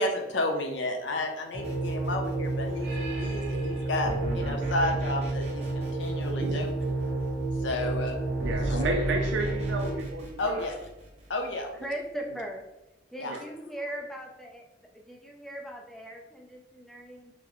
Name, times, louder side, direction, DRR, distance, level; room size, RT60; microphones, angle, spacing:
voice 1, 0.0-6.7 7.6-8.3 8.7-8.9 10.4-10.8 11.3-11.7 13.2-13.4, left 1 dB, 75° left, 3 dB, 0.6 m, -32 dB
sound 1, 1.5-10.0, right 2 dB, 55° right, 1.2 m, -30 dB
sound 2, 1.6-2.8 4.1-7.1 8.4-11.6, right 1 dB, 35° right, 0.7 m, -37 dB
voice 2, 8.4-10.6 13.3-13.4, right 2 dB, 75° right, 1 dB, 0.4 m, -32 dB
voice 3, 11.8-12.6 13.1-17.3, right 1 dB, ahead, -1 dB, 0.5 m, -39 dB
5.9 x 2.1 x 3.0 m, 0.99 s
head